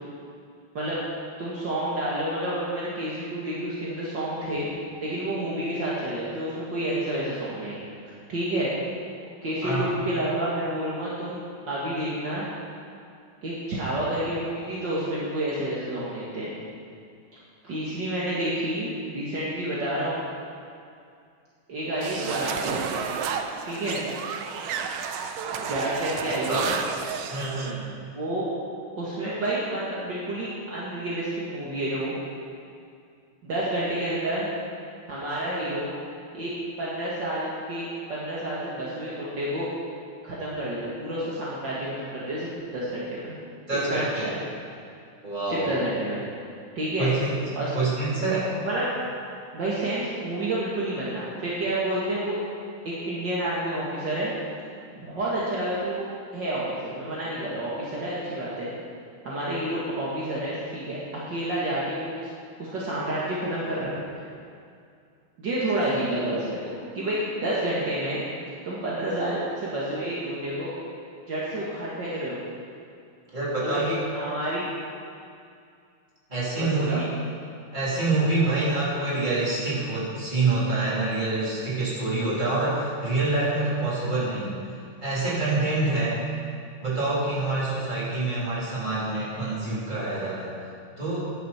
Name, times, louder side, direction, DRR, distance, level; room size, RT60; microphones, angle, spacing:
voice 1, 1.4-4.7 5.0-7.8 8.1-8.7 9.4-11.4 11.7-12.5 13.4-16.5 17.6-20.2 21.7-23.1 23.7-24.0 25.6-26.7 28.1-28.5 29.0-32.2 33.4-34.5 35.1-35.9 36.3-36.5 36.8-39.7 40.2-43.3 43.7-44.4 45.5-46.2 46.8-47.1 47.6-47.7 48.6-48.9 49.5-52.4 52.9-54.3 55.0-58.7 59.2-62.1 62.6-64.0 65.4-68.2 68.6-70.7 71.3-72.4 73.6-73.8 74.1-74.7 76.5-77.0 78.4-78.5, right 1 dB, 55° right, -7 dB, 2.4 m, -29 dB
voice 2, 9.6-9.9 26.5-26.8 27.3-27.8 43.7-44.2 45.2-45.7 47.0-47.3 47.7-48.5 73.3-74.0 76.3-77.1 77.7-84.6 85.0-86.2 86.8-90.5 91.0-91.2, right 2 dB, 20° right, -8 dB, 3.7 m, -26 dB
sound 1, 22.0-27.7, right 6 dB, 75° right, 1.5 m, -31 dB
14.5 x 10.5 x 4.3 m, 2.3 s
omnidirectional pair, 2.4 m